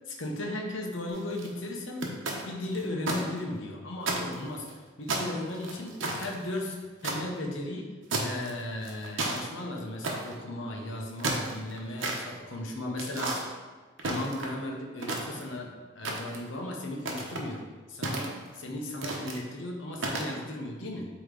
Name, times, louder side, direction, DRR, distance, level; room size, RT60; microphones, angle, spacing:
voice 1, 0.0-2.1 2.5-6.8 7.0-7.9 8.2-13.6 14.0-21.1, left 1 dB, 70° left, 0 dB, 0.9 m, -36 dB
sound 1, 1.1-1.5 2.0-3.2 3.6-3.7 4.0-4.7 5.1-7.2 8.1-8.5 8.8-9.4 10.0-10.4 11.0-12.2 13.0-13.4 14.0-14.6 15.0-15.6 16.0-16.5 17.0-17.5 18.0-18.6 19.0-19.4 20.0-20.3, right 2 dB, 70° right, 0.9 m, -32 dB
8.0 x 3.1 x 3.8 m, 1.3 s
head